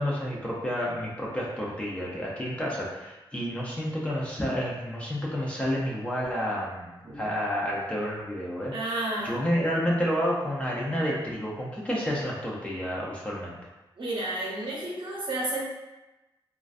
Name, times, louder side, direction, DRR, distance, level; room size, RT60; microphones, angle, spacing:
voice 1, 0.0-8.9 9.2-13.6, equal, 15° left, -5 dB, 0.4 m, -30 dB
voice 2, 8.7-9.4 14.0-15.6, right 2 dB, 60° right, -5 dB, 0.7 m, -31 dB
2.4 x 2.2 x 2.4 m, 1.0 s
wide cardioid pair, 145°, 9 cm